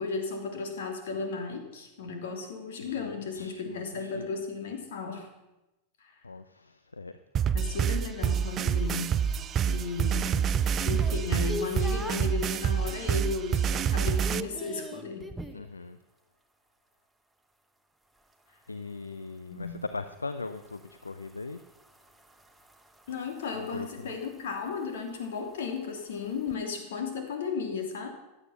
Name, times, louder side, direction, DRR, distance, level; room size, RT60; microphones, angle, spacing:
voice 1, 0.0-5.3 6.0-6.1 7.5-9.2 9.7-10.5 10.8-15.3 19.5-19.8 23.1-28.1, left 5 dB, 60° left, 4 dB, 3.2 m, -35 dB
voice 2, 2.8-4.3 6.2-7.1 10.0-10.4 15.5-16.0 18.7-21.6 23.5-24.1, left 3 dB, 80° left, 11 dB, 0.6 m, -40 dB
sound 1, 7.3-14.4, right 8 dB, 30° right, 0.5 m, -27 dB
sound 2, 8.3-12.4 12.9-13.3 13.6-15.7 18.2-26.6, equal, 5° right, 1.2 m, -45 dB
16.0 x 11.5 x 5.8 m, 0.97 s
figure-of-eight pair, 90°, 0 cm